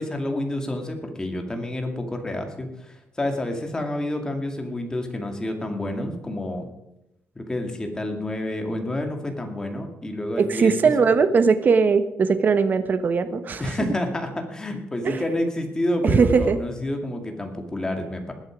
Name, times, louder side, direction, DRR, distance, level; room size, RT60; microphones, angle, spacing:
voice 1, 0.0-6.7 7.4-10.7 13.6-18.3, left 1 dB, 15° left, 4 dB, 2.3 m, -29 dB
voice 2, 10.4-13.6 15.0-15.2 16.0-16.6, right 5 dB, 45° right, 11 dB, 1.2 m, -19 dB
19.5 x 8.1 x 5.1 m, 0.86 s
cardioid pair, 130°, 5 cm